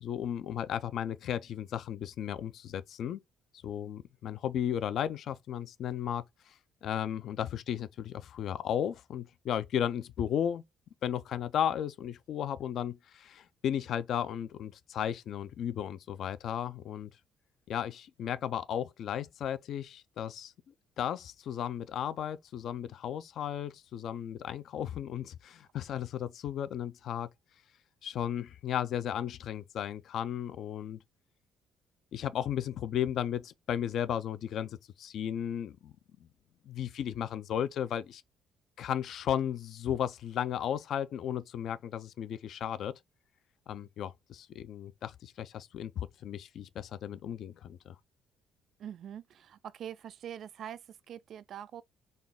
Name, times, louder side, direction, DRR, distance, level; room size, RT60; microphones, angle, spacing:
voice 1, 0.0-3.2 3.6-6.5 6.8-10.6 11.0-17.1 17.7-20.5 21.0-27.3 28.0-31.0 32.1-35.9 36.7-38.2 38.8-42.9 43.7-48.0, left 9 dB, 55° left, 0.4 m, -35 dB
voice 2, 48.8-51.8, right 9 dB, 50° right, 0.3 m, -44 dB
4.0 x 2.3 x 3.4 m
cardioid pair, 155°, 0 cm